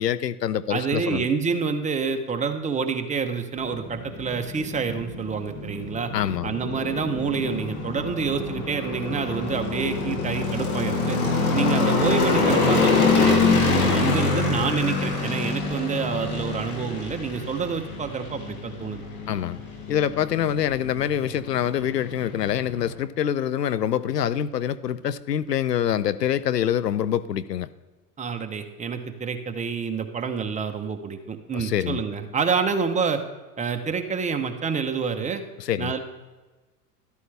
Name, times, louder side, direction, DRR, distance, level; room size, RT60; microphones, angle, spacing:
voice 1, 0.0-1.3 6.1-6.5 19.3-19.6 19.9-27.7 31.5-32.0 35.6-35.9, left 10 dB, 90° left, 16 dB, 0.6 m, -25 dB
voice 2, 0.7-6.1 6.4-11.2 11.5-19.0 19.3-19.4 28.2-33.2 33.6-35.4 35.8-36.0, right 5 dB, 15° right, 6 dB, 1.0 m, -28 dB
sound 1, 3.6-22.9, left 3 dB, 65° left, 2.9 m, -26 dB
12.5 x 12.5 x 3.4 m, 1.2 s
hypercardioid pair, 95°, 47 cm